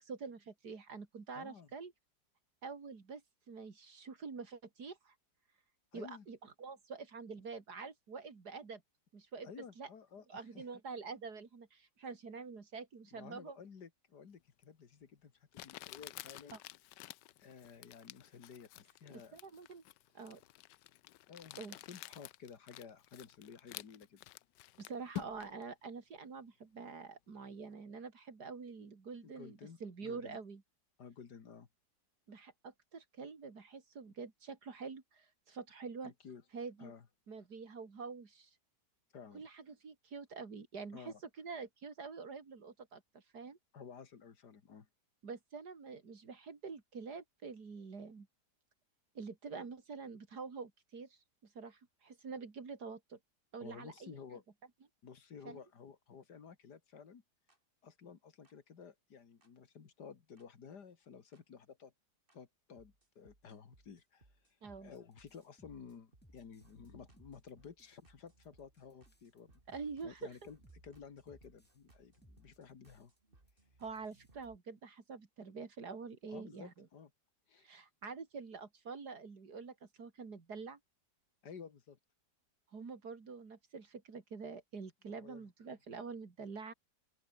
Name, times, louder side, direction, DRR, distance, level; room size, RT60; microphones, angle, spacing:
voice 1, 0.0-1.9 2.6-3.2 3.5-5.1 5.9-8.8 9.1-9.5 9.8-9.9 10.3-13.6 16.5-16.6 19.3-19.8 20.1-20.4 21.6-21.8 24.8-30.6 32.3-36.1 36.5-36.9 37.3-38.5 39.3-43.6 45.2-48.3 49.1-53.2 53.5-54.2 55.4-55.6 64.6-64.9 69.7-70.3 73.8-76.9 77.6-80.8 82.7-86.7, right 5 dB, 70° right, 3.3 m, -46 dB
voice 2, 1.3-1.7 5.9-6.3 9.4-10.6 13.1-16.6 17.4-19.4 21.3-21.6 21.9-24.2 29.2-30.4 31.0-31.7 36.0-36.4 36.8-37.1 39.1-39.4 40.9-41.2 43.7-44.9 53.6-54.4 55.0-57.2 57.8-61.9 62.3-64.3 64.8-69.6 70.0-70.6 70.8-73.1 76.3-77.1 77.5-77.7 81.4-82.0 85.2-85.5, left 6 dB, 75° left, 2.5 m, -53 dB
Crumpling crinkling, 14.6-14.7 15.5-25.6, left 16 dB, 90° left, 1.3 m, -50 dB
sound 1, 57.5-57.6 58.5-58.6 59.4-59.5 60.4-60.5 61.3-61.4 62.3-62.4 62.8-74.6, right 2 dB, 30° right, 3.6 m, -67 dB
sound 2, 64.6-66.9 67.2-68.0 68.3-71.9 72.2-73.2 73.5-73.6 73.8-74.5, equal, 5° left, 6.7 m, -66 dB
open air
omnidirectional pair, 1.8 m